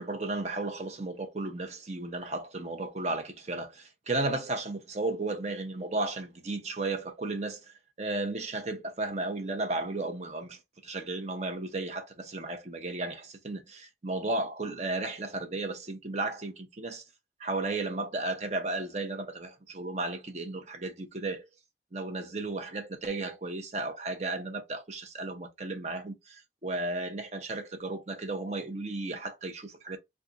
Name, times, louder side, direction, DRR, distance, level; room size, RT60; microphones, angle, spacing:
voice 1, 0.0-17.0 17.4-21.4 21.9-30.0, right 2 dB, 35° right, 0.6 m, -34 dB
2.4 x 2.3 x 3.8 m
head